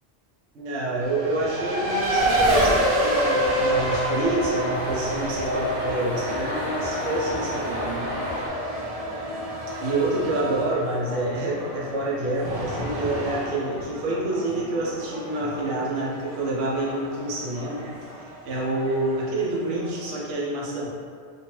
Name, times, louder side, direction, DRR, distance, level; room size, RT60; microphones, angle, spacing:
voice 1, 0.5-8.2 9.8-17.9 18.4-20.9, right 2 dB, 70° right, -5 dB, 0.9 m, -27 dB
Race car auto racing, 1.0-20.1, right 1 dB, 50° right, 0.5 m, -29 dB
sound 1, 3.4-8.5, left 1 dB, 35° left, 0.8 m, -32 dB
3.0 x 2.5 x 3.0 m, 2.1 s
omnidirectional pair, 1.2 m